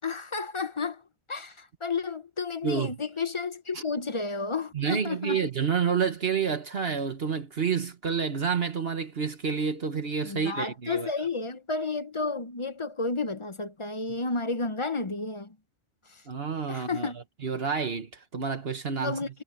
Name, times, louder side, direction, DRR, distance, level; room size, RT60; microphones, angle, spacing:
voice 1, 0.0-1.0 1.3-5.4 10.2-15.5 16.7-17.2 19.0-19.3, left 3 dB, 30° left, 0.8 m, -31 dB
voice 2, 2.6-2.9 3.7-3.8 4.7-11.1 16.3-19.2, right 6 dB, 55° right, 1.4 m, -29 dB
omnidirectional pair, 1.2 m